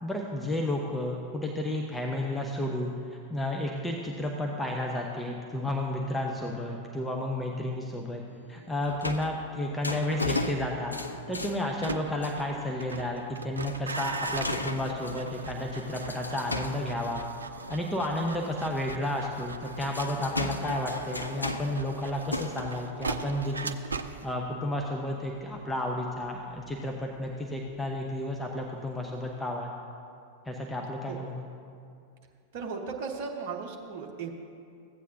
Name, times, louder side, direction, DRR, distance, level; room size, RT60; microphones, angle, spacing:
voice 1, 0.0-8.2 8.5-11.0 11.3-17.2 17.7-23.8 24.2-29.7 30.5-31.4, left 1 dB, 5° left, 0 dB, 0.7 m, -32 dB
sound 1, 8.3-12.6 12.9-13.3 13.7-17.9 18.4-18.5 19.4-24.4 24.9-25.0, left 2 dB, 85° left, 0.4 m, -37 dB
sound 2, 11.7-28.7 28.9-29.4, right 4 dB, 75° right, 0.3 m, -40 dB
voice 2, 32.5-34.5, right 5 dB, 50° right, 2 dB, 0.9 m, -36 dB
15.0 x 8.3 x 2.6 m, 2.4 s
figure-of-eight pair, 90°, 0 cm